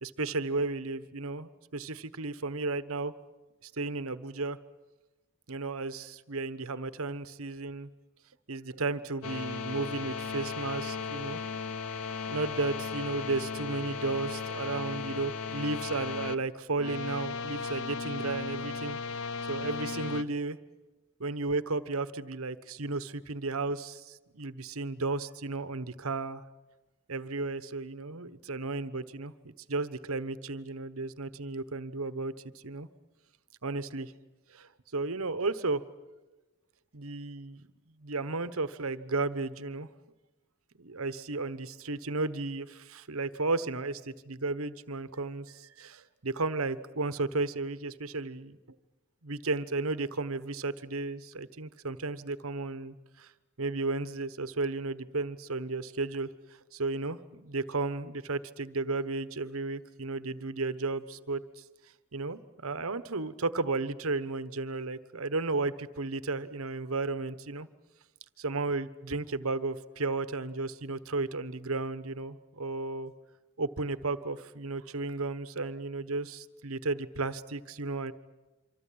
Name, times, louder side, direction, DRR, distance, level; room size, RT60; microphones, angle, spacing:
voice 1, 0.0-3.1 3.6-4.6 5.5-7.9 8.5-11.4 12.3-20.6 21.2-26.4 27.1-29.3 29.7-32.3 32.6-32.9 33.6-34.1 34.5-35.8 36.9-37.6 38.0-39.9 40.8-48.6 49.2-53.3 53.6-56.3 56.7-61.6 62.1-67.7 68.4-73.1 73.6-78.1, right 3 dB, 70° right, 13 dB, 1.2 m, -34 dB
sound 1, 9.2-16.4 16.8-20.2, left 5 dB, 75° left, 1.0 m, -36 dB
26.5 x 25.5 x 8.7 m, 1.1 s
head